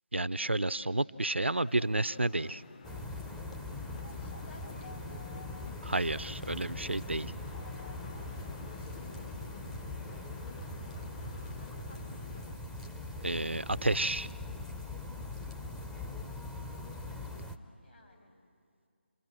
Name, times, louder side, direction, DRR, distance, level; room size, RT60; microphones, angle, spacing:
voice 1, 0.1-2.6 5.8-7.3 13.2-14.3, right 2 dB, 80° right, 16 dB, 0.6 m, -31 dB
sound 1, 1.6-12.5, left 4 dB, 35° left, 0.8 m, -51 dB
sound 2, 2.8-17.6, left 2 dB, 5° left, 0.6 m, -41 dB
voice 2, 3.8-5.8 8.2-9.6 11.6-12.2 15.3-16.2 17.8-18.3, left 2 dB, 75° left, -1 dB, 7.7 m, -60 dB
29.5 x 23.5 x 7.6 m, 2.3 s
figure-of-eight pair, 150°, 6 cm